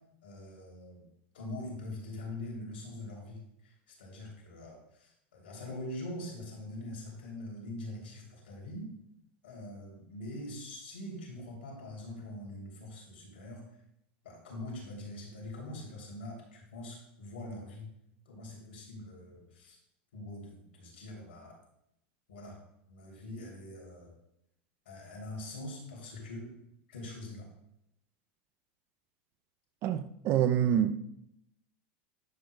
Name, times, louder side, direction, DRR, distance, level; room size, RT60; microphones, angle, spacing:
voice 1, 0.2-1.0 1.3-8.9 9.4-13.6 14.2-17.9 18.2-19.8 20.1-21.6 22.3-22.6 22.9-24.1 24.8-26.6 26.9-27.5, left 1 dB, 90° left, 3.2 m, -43 dB
voice 2, 29.8-31.0, right 10 dB, 45° right, 0.5 m, -27 dB
11.0 x 6.3 x 2.3 m
supercardioid pair, 115°, 6 cm